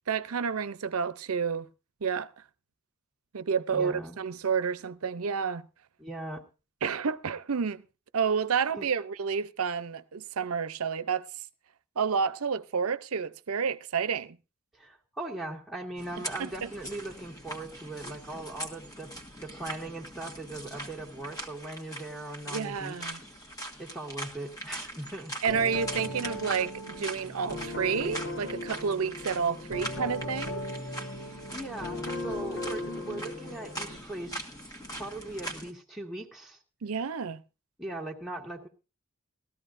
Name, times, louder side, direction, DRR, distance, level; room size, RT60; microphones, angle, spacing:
voice 1, 0.1-1.7 2.0-2.3 3.3-5.7 6.8-7.8 8.1-11.3 12.0-14.4 16.4-16.7 22.5-23.2 25.4-30.6 36.8-37.4, right 6 dB, 85° right, 0.6 m, -30 dB
voice 2, 3.7-4.2 6.0-6.4 8.7-8.8 14.7-19.1 19.4-23.2 23.8-25.3 30.9-31.0 31.5-34.5 35.0-36.6 37.8-38.7, right 2 dB, ahead, 1.7 m, -39 dB
sound 1, 16.0-35.7, right 1 dB, 15° left, 1.4 m, -42 dB
sound 2, 25.5-34.0, left 1 dB, 75° left, 3.1 m, -37 dB
18.5 x 13.5 x 2.6 m
head